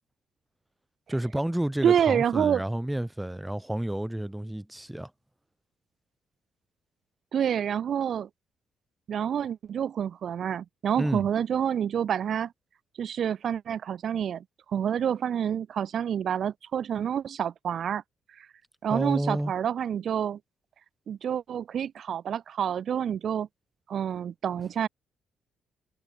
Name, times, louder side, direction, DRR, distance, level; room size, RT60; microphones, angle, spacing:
voice 1, 1.1-5.1 11.0-11.3 18.9-19.5, right 1 dB, 5° right, 1.2 m, -30 dB
voice 2, 1.8-2.6 7.3-8.3 9.1-12.5 13.0-18.0 18.4-18.5 18.8-20.4 21.1-23.5 23.9-24.9, right 8 dB, 60° right, 0.7 m, -28 dB
cardioid pair, 90°, 0 cm